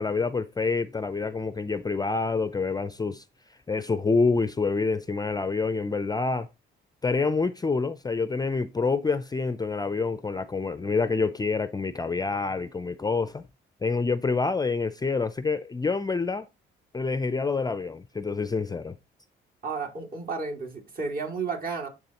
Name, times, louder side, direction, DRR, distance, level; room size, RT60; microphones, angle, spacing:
voice 1, 0.0-3.2 3.7-6.5 7.0-13.4 13.8-16.5 16.9-19.0, left 4 dB, 20° left, 0.5 m, -27 dB
voice 2, 19.6-21.9, right 4 dB, 45° right, 2.5 m, -32 dB
10.0 x 3.6 x 2.9 m
cardioid pair, 90°, 20 cm